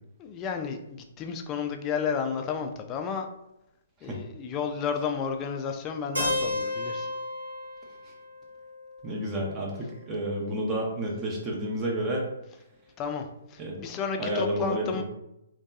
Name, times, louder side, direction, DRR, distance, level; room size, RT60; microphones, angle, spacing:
voice 1, 0.2-3.3 4.0-7.1 13.0-15.0, left 6 dB, 25° left, 5 dB, 0.3 m, -32 dB
Keyboard (musical), 6.2-10.0, left 2 dB, 90° right, 1.2 m, -33 dB
voice 2, 9.0-12.3 13.6-13.8 14.2-15.0, right 1 dB, 25° right, -2 dB, 0.6 m, -30 dB
2.7 x 2.2 x 2.3 m, 0.83 s
hypercardioid pair, 130°, 0 cm